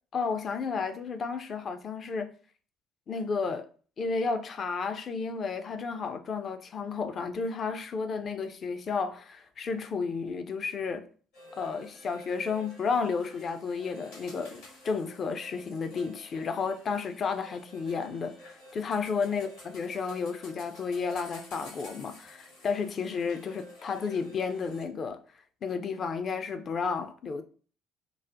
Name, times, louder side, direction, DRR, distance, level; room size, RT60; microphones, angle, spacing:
voice 1, 0.1-2.3 3.1-3.6 4.0-11.1 11.5-25.2 25.6-27.4, left 5 dB, 40° left, 0.4 m, -32 dB
sound 1, 11.3-24.8, left 1 dB, 70° left, 1.4 m, -51 dB
4.7 x 2.1 x 2.5 m
figure-of-eight pair, 55°, 0 cm